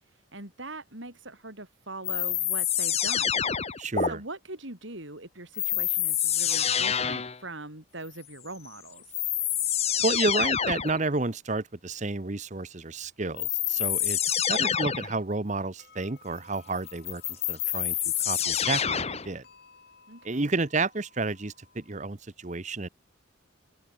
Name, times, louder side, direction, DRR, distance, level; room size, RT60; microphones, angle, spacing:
voice 1, 0.3-9.2 20.1-20.5, right 2 dB, 65° right, 6.1 m, -42 dB
sound 1, 2.0-4.1 5.6-7.4 8.7-8.8 9.1-11.0 13.4-15.2 16.9-19.3, left 9 dB, 30° left, 1.1 m, -27 dB
sound 2, 3.1-5.1 14.5-14.6 15.8-22.0, left 4 dB, 50° left, 7.2 m, -60 dB
voice 2, 3.8-4.2 10.0-18.0 18.3-19.4 20.2-22.9, right 3 dB, 35° right, 1.0 m, -31 dB
open air
head